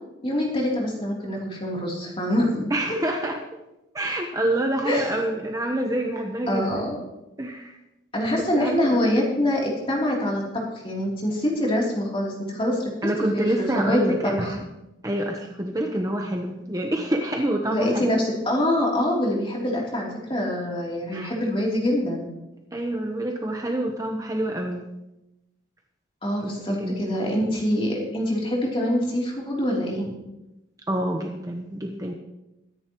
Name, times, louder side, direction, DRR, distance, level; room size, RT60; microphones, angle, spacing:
voice 1, 0.2-2.7 4.8-5.2 6.5-7.0 8.1-12.9 13.3-14.5 17.7-22.2 26.2-30.1, left 1 dB, 30° left, -3 dB, 3.3 m, -25 dB
voice 2, 2.7-3.4 3.9-6.9 7.4-7.7 8.5-9.0 13.0-14.6 15.0-18.1 21.1-21.3 22.7-24.8 26.4-27.1 30.9-32.1, right 1 dB, 20° right, 2 dB, 1.0 m, -27 dB
22.5 x 10.5 x 3.1 m, 0.94 s
head